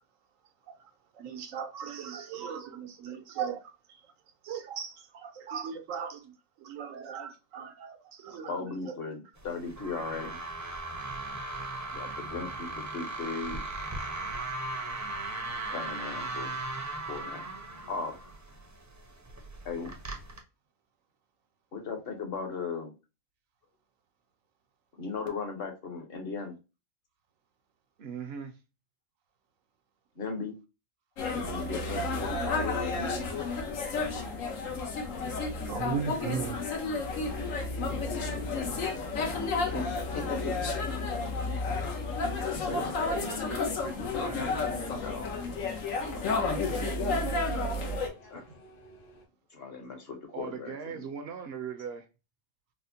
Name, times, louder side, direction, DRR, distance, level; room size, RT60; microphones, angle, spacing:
voice 1, 0.7-4.1 4.4-8.9 35.7-36.6, right 7 dB, 90° right, 1.1 m, -38 dB
voice 2, 8.3-10.4 11.9-13.7 15.7-16.5 17.1-18.4 19.6-19.9 21.7-22.9 24.9-26.6 30.2-30.6 31.3-33.5 39.7-39.9 40.1-40.6 42.3-43.3 44.8-45.3 46.0-47.4 48.3-48.4 49.5-51.1, left 4 dB, 55° left, 0.9 m, -38 dB
sound 1, 9.4-20.4, right 2 dB, 25° right, 0.4 m, -38 dB
voice 3, 28.0-28.6 36.0-36.6 42.6-45.0 50.3-52.1, right 6 dB, 65° right, 0.7 m, -40 dB
sound 2, 31.2-48.1, left 3 dB, 90° left, 1.2 m, -31 dB
sound 3, 37.2-49.2, equal, 70° left, 1.3 m, -49 dB
4.1 x 2.1 x 2.7 m
omnidirectional pair, 1.3 m